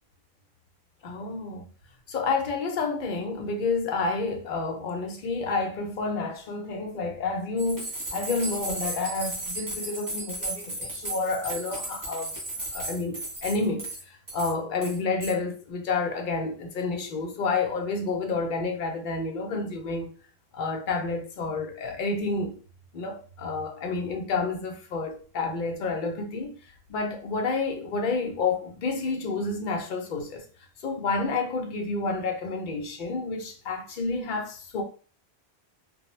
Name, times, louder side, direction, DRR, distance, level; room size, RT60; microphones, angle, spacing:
voice 1, 1.0-1.7 2.1-20.1 20.5-22.6 22.9-26.5 26.9-30.5 30.8-34.8, left 3 dB, 60° left, 0.6 m, -30 dB
sound 1, 7.6-14.0 14.3-14.5 14.8-15.3, right 2 dB, 20° right, 0.6 m, -35 dB
2.1 x 2.0 x 3.0 m
omnidirectional pair, 1.1 m